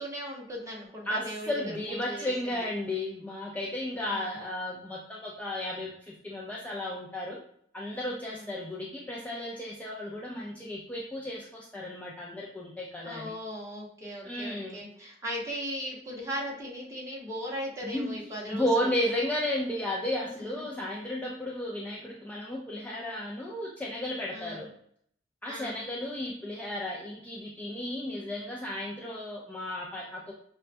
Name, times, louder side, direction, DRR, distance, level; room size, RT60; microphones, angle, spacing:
voice 1, 0.0-1.5 1.9-2.6 4.1-4.4 8.3-8.5 13.0-18.9 20.5-20.7 24.3-24.7 25.5-25.8, equal, 15° right, -3 dB, 0.9 m, -38 dB
voice 2, 1.1-7.4 7.7-13.3 14.2-14.8 17.8-18.1 18.5-24.7 25.4-30.3, left 1 dB, 10° left, -4 dB, 0.4 m, -34 dB
5.4 x 2.2 x 2.5 m, 0.66 s
head